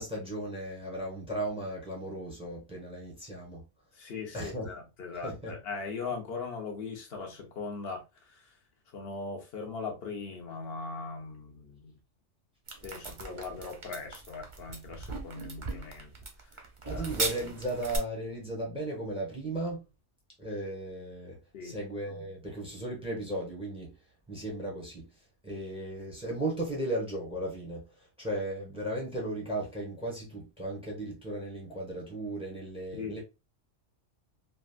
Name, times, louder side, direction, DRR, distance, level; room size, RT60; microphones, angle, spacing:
voice 1, 0.0-3.6 4.3-4.7 5.2-5.5 16.8-19.8 20.4-23.9 24.3-25.1 25.4-33.2, right 1 dB, 5° right, 1.1 m, -36 dB
voice 2, 3.9-8.5 8.9-11.9 12.8-16.1 16.9-17.0 21.5-21.8 32.9-33.2, left 4 dB, 55° left, 1.1 m, -39 dB
sound 1, 12.7-18.0, right 3 dB, 35° right, 0.5 m, -38 dB
3.3 x 2.5 x 2.4 m
omnidirectional pair, 1.2 m